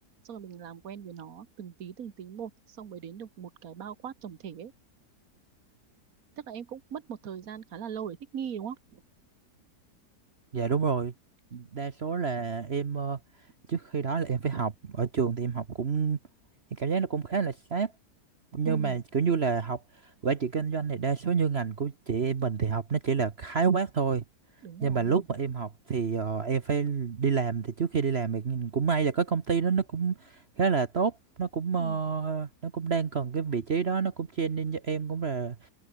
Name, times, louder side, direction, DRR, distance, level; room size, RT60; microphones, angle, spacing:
voice 1, 0.2-4.7 6.4-9.0 18.7-19.0 24.6-25.3 31.8-32.0, right 8 dB, 60° right, 1.8 m, -40 dB
voice 2, 10.5-11.1 11.5-13.2 13.7-16.2 16.8-17.9 18.5-19.8 20.2-24.2 24.8-35.6, right 6 dB, 45° right, 1.2 m, -28 dB
omnidirectional pair, 1.7 m